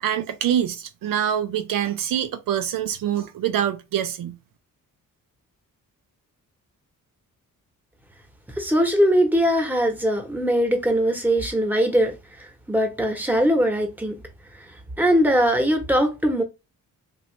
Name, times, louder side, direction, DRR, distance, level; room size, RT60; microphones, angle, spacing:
voice 1, 0.0-4.4, right 10 dB, 70° right, 0.5 m, -25 dB
voice 2, 8.6-12.1 12.7-14.2 15.0-16.4, equal, 5° right, 1.1 m, -20 dB
3.0 x 2.5 x 3.1 m
cardioid pair, 70°, 34 cm